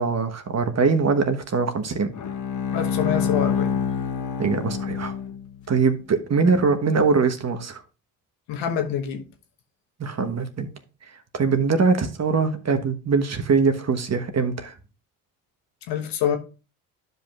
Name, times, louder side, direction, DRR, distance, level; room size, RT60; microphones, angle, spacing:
voice 1, 0.0-2.1 4.4-5.1 5.7-7.8 10.0-10.7 11.3-14.7, right 4 dB, 40° right, 1.2 m, -22 dB
Bowed string instrument, 2.1-5.7, left 7 dB, 45° left, 1.1 m, -26 dB
voice 2, 2.7-3.8 8.5-9.2 15.9-16.4, left 9 dB, 80° left, 1.2 m, -26 dB
12.0 x 5.4 x 2.4 m
supercardioid pair, 60°, 41 cm